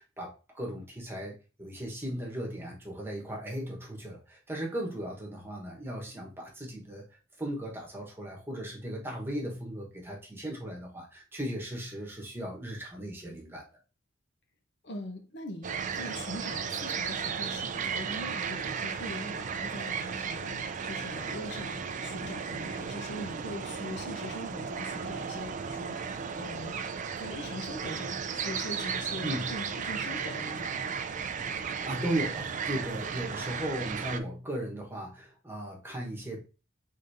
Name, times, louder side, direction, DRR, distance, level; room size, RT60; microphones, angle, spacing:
voice 1, 0.0-7.0 7.4-13.6 29.2-29.5 31.8-36.4, right 1 dB, 10° right, 1.2 m, -37 dB
voice 2, 14.8-30.9, left 1 dB, 60° left, 0.9 m, -42 dB
sound 1, 15.6-34.2, right 6 dB, 40° right, 0.4 m, -35 dB
5.2 x 3.7 x 2.7 m
head